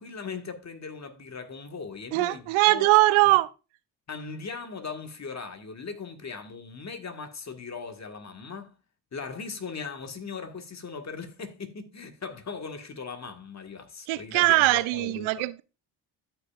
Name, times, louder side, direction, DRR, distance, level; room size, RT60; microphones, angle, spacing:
voice 1, 0.0-2.9 3.2-3.3 4.1-8.7 9.1-15.4, left 5 dB, 35° left, 1.6 m, -39 dB
voice 2, 2.1-3.5 14.1-15.6, right 20 dB, 80° right, 0.6 m, -21 dB
13.0 x 5.7 x 2.4 m
supercardioid pair, 60°, 48 cm